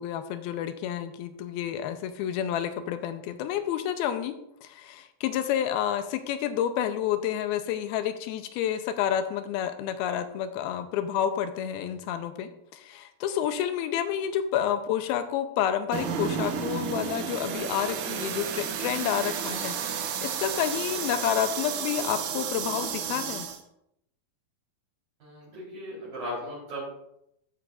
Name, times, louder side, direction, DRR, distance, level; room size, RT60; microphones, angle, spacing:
voice 1, 0.0-4.4 4.6-23.5, left 10 dB, 85° left, 9 dB, 2.4 m, -29 dB
sound 1, 15.9-23.6, right 7 dB, 75° right, 1.9 m, -32 dB
voice 2, 25.2-26.8, equal, 55° right, -9 dB, 5.4 m, -37 dB
13.5 x 8.2 x 2.5 m, 0.78 s
omnidirectional pair, 4.6 m